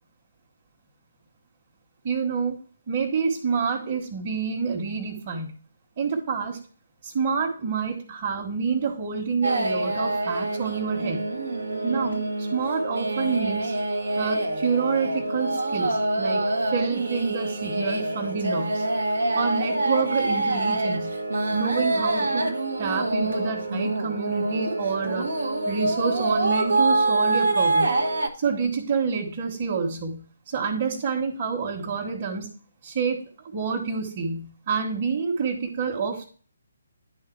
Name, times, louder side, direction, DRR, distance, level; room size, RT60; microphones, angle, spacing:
voice 1, 2.0-2.6 2.9-5.5 6.0-6.6 7.0-11.3 11.8-13.7 14.1-16.4 16.7-18.9 19.3-21.1 21.5-25.3 25.6-27.9 28.4-32.5 32.8-33.2 33.5-36.3, right 5 dB, 35° right, -3 dB, 1.4 m, -28 dB
sound 1, 9.4-28.3, right 2 dB, 75° right, 1.0 m, -26 dB
10.5 x 3.7 x 4.6 m, 0.40 s
figure-of-eight pair, 145°, 0 cm